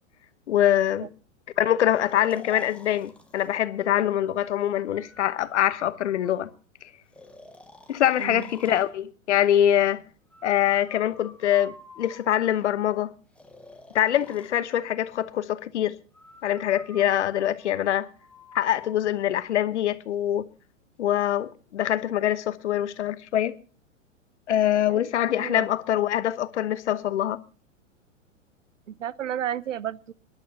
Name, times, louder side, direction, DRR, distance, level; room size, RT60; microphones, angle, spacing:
voice 1, 0.5-1.1 1.6-6.5 7.9-10.0 10.4-13.1 13.9-15.9 16.4-18.1 18.5-20.4 21.0-23.5 24.5-27.4, left 11 dB, 60° left, 1.1 m, -24 dB
Breathing, 1.8-3.6 4.9-6.6 7.1-8.9 10.3-12.6 13.3-14.5 16.1-19.0, left 2 dB, 5° left, 1.3 m, -49 dB
voice 2, 28.9-30.1, right 10 dB, 75° right, 0.7 m, -32 dB
27.0 x 11.0 x 2.8 m
figure-of-eight pair, 105°, 39 cm